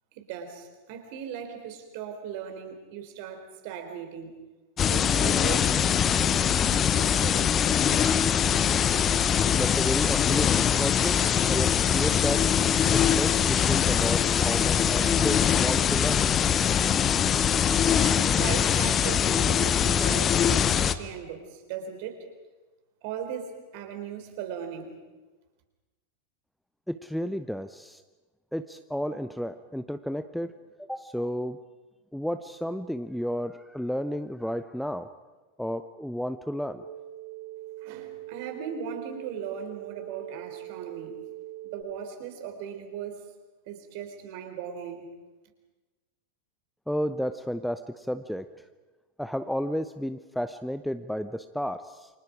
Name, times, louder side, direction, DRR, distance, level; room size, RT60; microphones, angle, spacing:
voice 1, 0.1-4.4 4.9-7.5 18.0-22.3 23.0-25.0 37.8-41.2 41.7-43.3 43.7-45.1, right 8 dB, 50° right, 6 dB, 3.7 m, -38 dB
sound 1, 4.8-20.9, left 8 dB, 25° left, 0.9 m, -23 dB
voice 2, 9.5-12.5 12.9-16.3 26.9-28.0 28.5-31.6 32.1-35.1 35.6-36.8 46.9-48.5 49.2-52.1, equal, ahead, 11 dB, 0.6 m, -32 dB
sound 2, 36.8-41.8, right 15 dB, 80° right, 4.7 m, -42 dB
29.0 x 25.0 x 5.0 m, 1.2 s
figure-of-eight pair, 90°, 0 cm